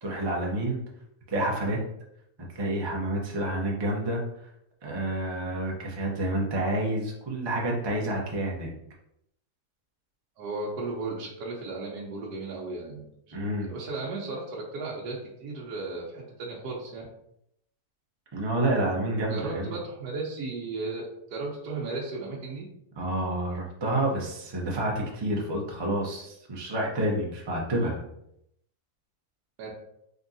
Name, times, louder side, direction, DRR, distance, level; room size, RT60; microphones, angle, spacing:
voice 1, 0.0-0.8 1.3-1.8 2.5-4.2 4.8-8.7 13.3-13.7 18.3-19.7 23.0-28.0, right 1 dB, 35° right, -2 dB, 0.4 m, -29 dB
voice 2, 10.4-13.3 13.6-17.1 19.3-22.6 29.6-29.7, right 3 dB, 75° right, -3 dB, 1.2 m, -35 dB
3.8 x 3.5 x 2.7 m, 0.77 s
omnidirectional pair, 1.7 m